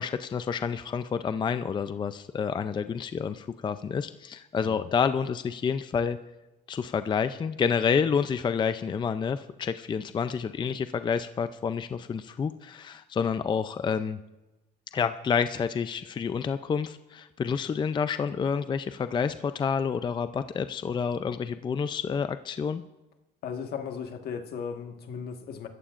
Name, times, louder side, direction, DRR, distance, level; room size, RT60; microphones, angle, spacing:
voice 1, 0.0-6.2 6.7-14.2 14.9-22.8, left 6 dB, 25° left, 0.4 m, -29 dB
voice 2, 23.4-25.7, left 6 dB, 70° left, 1.5 m, -36 dB
27.0 x 14.5 x 2.5 m
cardioid pair, 110°, 17 cm